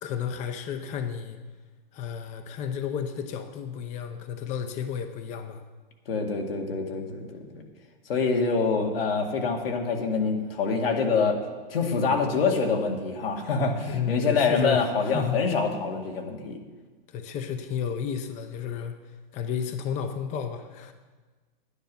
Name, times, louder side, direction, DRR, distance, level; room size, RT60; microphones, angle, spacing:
voice 1, 0.0-1.4 1.9-5.6 13.9-15.4 17.1-18.9 19.3-20.9, left 7 dB, 25° left, 7 dB, 0.7 m, -32 dB
voice 2, 6.1-7.6 8.1-11.4 11.7-16.6, left 4 dB, 80° left, 2 dB, 2.1 m, -26 dB
10.5 x 9.5 x 5.5 m, 1.3 s
hypercardioid pair, 130°, 29 cm